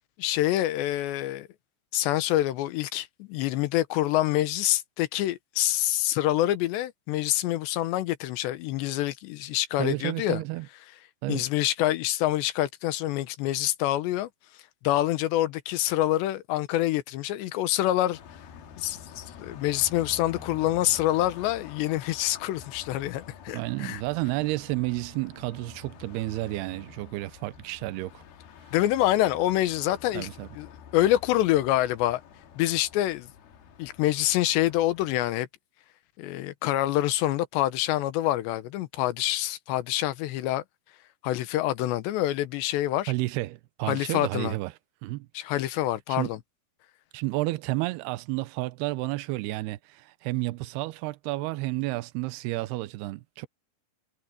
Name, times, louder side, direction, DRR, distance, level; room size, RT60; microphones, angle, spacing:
voice 1, 0.2-1.5 1.9-10.4 11.3-14.3 14.8-18.2 18.8-24.0 28.7-30.3 30.6-30.7 30.9-32.2 32.6-33.3 33.8-35.5 36.2-40.6 41.2-43.1 43.8-44.6 45.3-46.4, left 14 dB, 80° left, 3.2 m, -26 dB
voice 2, 9.8-10.7 11.2-11.5 23.5-28.1 30.1-30.5 43.1-44.7 45.0-45.3 46.1-46.3 47.1-53.5, right 19 dB, 80° right, 2.6 m, -31 dB
Car passing by, 18.1-35.3, left 7 dB, 65° left, 3.5 m, -48 dB
omnidirectional pair, 5.1 m